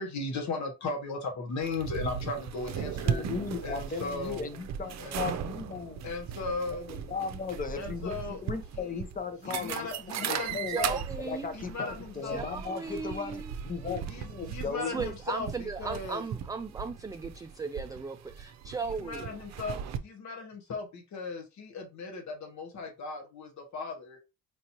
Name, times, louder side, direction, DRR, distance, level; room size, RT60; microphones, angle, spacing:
voice 1, 0.0-3.2 3.6-4.5 5.0-5.2 6.0-6.9 7.7-8.4 8.7-9.0 9.4-11.0 11.5-12.4 14.1-16.2 18.8-24.2, left 3 dB, 65° left, 1.4 m, -37 dB
sound 1, 1.6-20.0, right 8 dB, 65° right, 0.6 m, -38 dB
voice 2, 3.1-6.1 6.9-9.9 10.2-10.8 11.2-14.9, left 5 dB, 30° left, 0.9 m, -37 dB
voice 3, 10.7-11.5 12.2-13.5 14.9-19.3, right 4 dB, 10° right, 0.3 m, -37 dB
5.2 x 2.7 x 3.0 m
cardioid pair, 90°, 30 cm